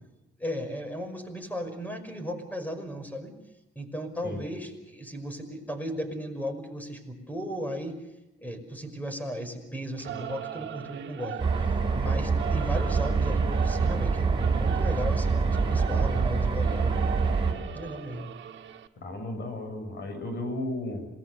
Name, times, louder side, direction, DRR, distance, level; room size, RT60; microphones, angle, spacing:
voice 1, 0.4-3.3 3.8-8.0 8.4-17.2 17.7-18.3, equal, 10° left, 8 dB, 5.6 m, -36 dB
Singing / Musical instrument, 10.0-18.9, right 10 dB, 65° right, 1.8 m, -39 dB
sound 1, 11.4-17.5, right 4 dB, 25° right, 5.6 m, -25 dB
voice 2, 19.0-21.1, left 1 dB, 60° left, 7 dB, 7.7 m, -34 dB
27.5 x 20.0 x 6.9 m, 0.90 s
cardioid pair, 90°, 20 cm